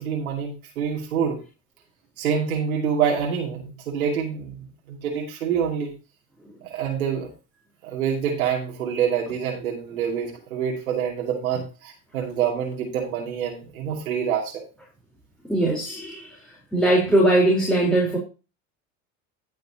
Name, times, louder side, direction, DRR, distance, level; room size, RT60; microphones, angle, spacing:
voice 1, 0.0-1.4 2.2-5.9 6.6-7.3 7.8-14.6, right 7 dB, 90° right, 2.8 m, -26 dB
voice 2, 15.5-16.3 16.7-18.2, right 1 dB, ahead, 4.1 m, -20 dB
15.5 x 6.5 x 2.9 m
hypercardioid pair, 90°, 41 cm